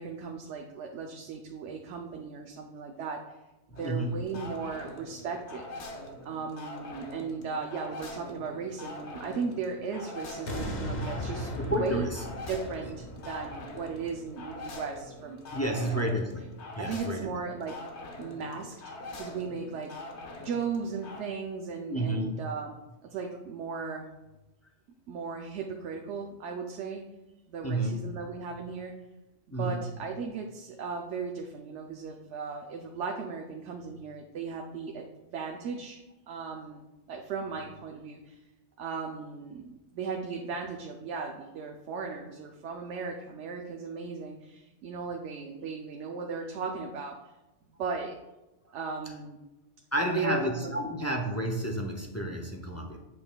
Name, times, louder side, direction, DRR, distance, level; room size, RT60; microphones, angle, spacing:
voice 1, 0.0-3.4 3.7-5.7 6.2-12.1 12.5-16.1 16.8-17.7 18.2-20.1 20.4-22.8 23.0-24.1 25.1-27.0 27.5-28.9 29.6-36.0 36.3-38.4 38.8-47.2 47.8-48.1 48.7-49.4 50.0-50.9, right 5 dB, 85° right, 2 dB, 0.9 m, -36 dB
voice 2, 3.7-4.2 11.6-12.2 15.5-17.3 21.9-22.5 27.6-28.1 29.5-29.9 49.9-53.0, right 1 dB, 20° left, 2 dB, 0.4 m, -31 dB
sound 1, 3.8-21.2, left 2 dB, 75° left, 1.2 m, -44 dB
sound 2, 10.4-15.6 16.0-16.1, left 1 dB, 45° left, 0.8 m, -38 dB
8.5 x 5.4 x 2.2 m, 1.0 s
omnidirectional pair, 1.2 m